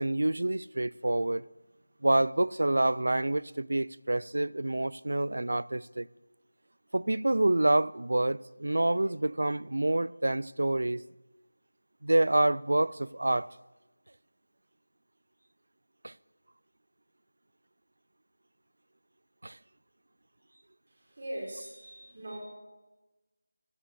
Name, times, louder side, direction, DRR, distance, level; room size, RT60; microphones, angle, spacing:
voice 1, 0.0-1.4 2.0-6.1 6.9-11.0 12.0-13.5 16.0-16.1 19.4-19.6, right 1 dB, 70° right, 0.4 m, -27 dB
voice 2, 20.9-22.4, right 1 dB, 35° right, 3.9 m, -41 dB
15.5 x 6.8 x 8.3 m
figure-of-eight pair, 180°, 0 cm